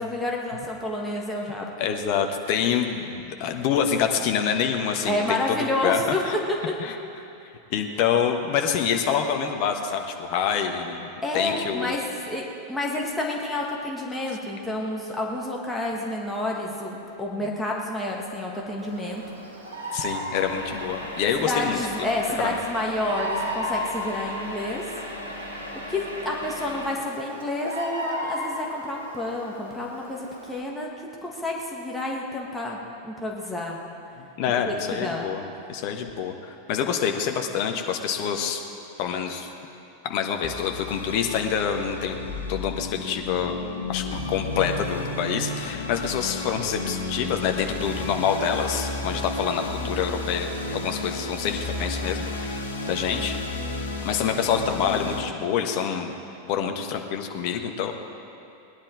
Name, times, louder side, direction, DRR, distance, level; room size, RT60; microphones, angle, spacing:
voice 1, 0.0-1.7 5.1-6.4 11.2-19.2 21.4-24.9 25.9-30.9 31.2-33.8 34.4-35.3, left 1 dB, 5° left, -3 dB, 1.7 m, -29 dB
voice 2, 1.8-6.3 6.8-6.9 7.7-11.1 11.3-11.9 19.9-21.8 22.4-22.6 34.2-38.6 39.0-39.5 40.0-42.2 42.5-43.6 43.9-53.4 54.0-56.1 56.5-57.9, left 7 dB, 45° left, 4 dB, 1.3 m, -26 dB
Bird vocalization bird call bird song, 18.8-30.6, equal, 70° right, 2.2 m, -36 dB
sound 1, 20.4-26.9, equal, 90° left, 2.0 m, -37 dB
sound 2, 40.4-55.2, left 2 dB, 70° left, 1.3 m, -32 dB
19.5 x 10.5 x 4.8 m, 2.7 s
figure-of-eight pair, 90°, 0 cm